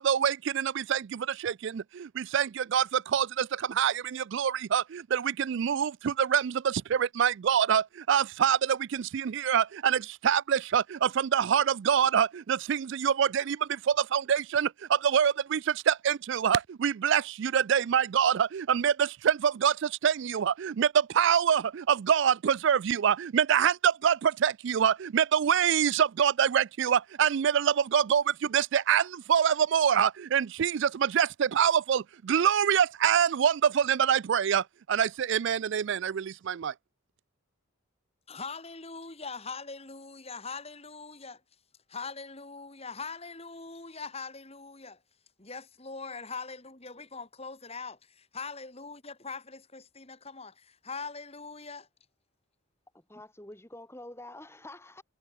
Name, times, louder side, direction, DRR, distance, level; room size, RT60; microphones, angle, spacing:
voice 1, 0.0-36.7, right 8 dB, 55° right, 0.3 m, -26 dB
voice 2, 38.3-41.4 41.9-45.0 45.4-51.9, left 4 dB, 30° left, 2.7 m, -42 dB
voice 3, 53.1-55.0, left 1 dB, 10° left, 2.1 m, -46 dB
head